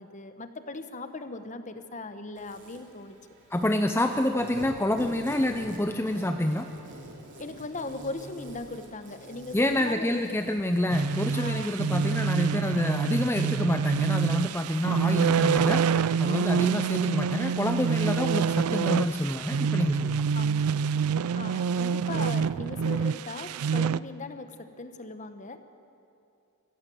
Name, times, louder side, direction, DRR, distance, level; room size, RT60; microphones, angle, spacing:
voice 1, 0.0-3.1 7.4-10.4 11.3-11.7 16.2-16.6 20.3-20.6 21.4-25.6, left 3 dB, 35° left, 9 dB, 1.1 m, -39 dB
Insect, 2.3-21.3, right 1 dB, 55° right, 3.5 m, -49 dB
voice 2, 3.5-6.7 9.5-20.2, left 1 dB, 10° left, 6 dB, 0.6 m, -27 dB
sound 1, 10.9-24.0, right 6 dB, 90° right, 0.4 m, -27 dB
25.0 x 15.0 x 7.8 m, 2.7 s
head